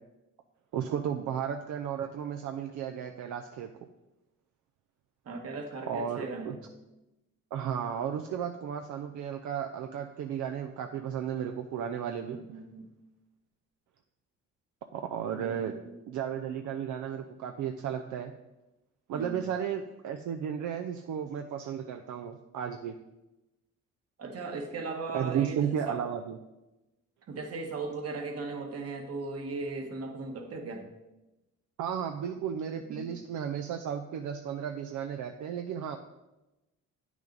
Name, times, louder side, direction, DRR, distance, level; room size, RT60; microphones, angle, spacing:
voice 1, 0.7-3.7 5.9-6.5 7.5-12.4 14.9-15.8 16.1-18.3 19.1-23.0 25.1-26.4 31.8-36.0, right 8 dB, 75° right, 5 dB, 0.6 m, -34 dB
voice 2, 5.2-6.6 12.3-12.9 15.4-16.0 19.1-19.4 24.2-26.0 27.3-30.8 32.9-33.1, right 3 dB, 55° right, 4 dB, 1.5 m, -38 dB
8.8 x 6.2 x 3.9 m, 0.99 s
cardioid pair, 90°, 30 cm